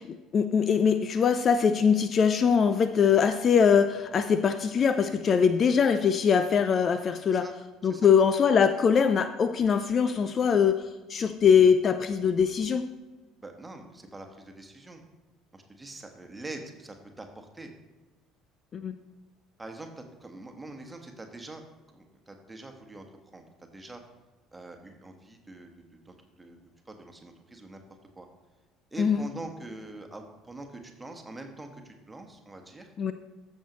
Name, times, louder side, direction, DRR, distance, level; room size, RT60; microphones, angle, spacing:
voice 1, 0.1-7.5 7.8-12.9 18.7-18.9 29.0-29.3 33.0-33.1, left 6 dB, 40° left, 11 dB, 0.5 m, -22 dB
voice 2, 13.4-15.0 15.5-17.7 19.6-21.6 21.9-23.0 23.3-24.0 24.5-27.8 28.1-28.3 28.9-32.9, right 2 dB, 15° right, 4 dB, 1.5 m, -44 dB
14.5 x 6.5 x 3.1 m, 1.2 s
figure-of-eight pair, 55°, 0 cm